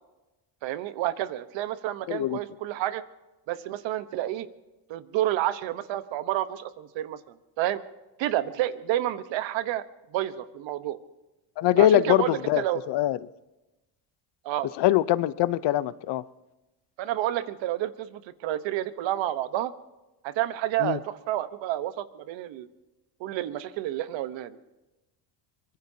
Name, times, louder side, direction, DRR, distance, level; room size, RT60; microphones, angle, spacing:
voice 1, 0.6-3.0 3.5-4.5 4.9-7.2 7.6-7.8 8.2-9.8 10.1-11.0 11.8-12.8 14.4-14.7 17.0-19.7 20.2-22.7 23.2-24.6, right 13 dB, 70° right, 1.2 m, -29 dB
voice 2, 2.1-2.4 11.6-13.2 14.8-16.2 20.8-21.0, left 13 dB, 60° left, 0.8 m, -23 dB
24.0 x 21.0 x 2.8 m
cardioid pair, 100°, 46 cm